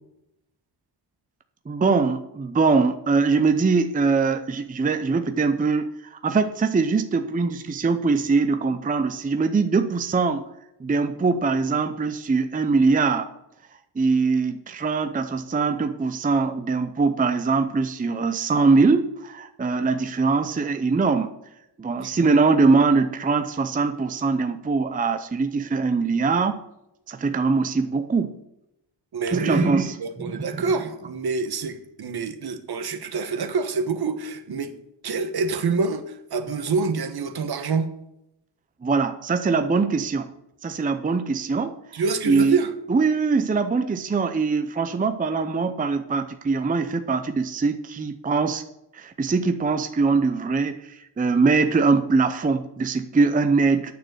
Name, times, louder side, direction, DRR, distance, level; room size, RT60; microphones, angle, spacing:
voice 1, 1.7-10.4 10.8-13.3 14.0-21.3 21.8-26.6 27.1-28.4 29.3-30.6 38.8-40.3 40.6-41.8 42.3-42.6 42.9-48.6 48.9-53.9, right 4 dB, 20° right, 0.6 m, -22 dB
voice 2, 29.1-29.7 30.0-34.7 35.0-37.9 41.9-42.7, right 4 dB, 55° right, 1.3 m, -26 dB
9.3 x 6.6 x 8.1 m
wide cardioid pair, 120°, 45 cm